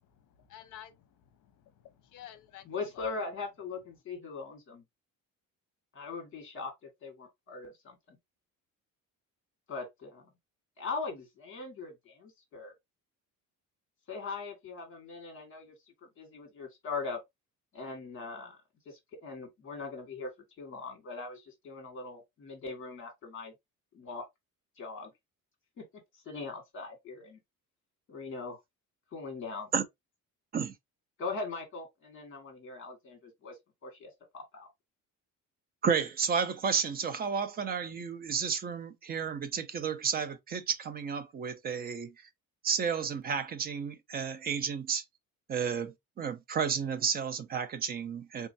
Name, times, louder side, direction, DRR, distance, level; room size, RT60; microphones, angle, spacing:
voice 1, 0.0-3.0, left 11 dB, 60° left, 0.8 m, -52 dB
voice 2, 2.6-4.8 5.9-6.7 7.0-8.2 9.7-10.2 10.8-12.7 14.1-15.7 16.2-17.2 17.7-18.6 18.9-20.3 20.6-23.5 23.9-24.3 24.8-25.1 26.3-27.4 28.1-28.6 29.1-29.7 31.2-34.7, left 4 dB, 35° left, 1.7 m, -40 dB
voice 3, 35.8-42.1 42.6-45.0 45.5-48.5, right 6 dB, 30° right, 0.4 m, -32 dB
3.4 x 3.1 x 2.7 m
cardioid pair, 170°, 34 cm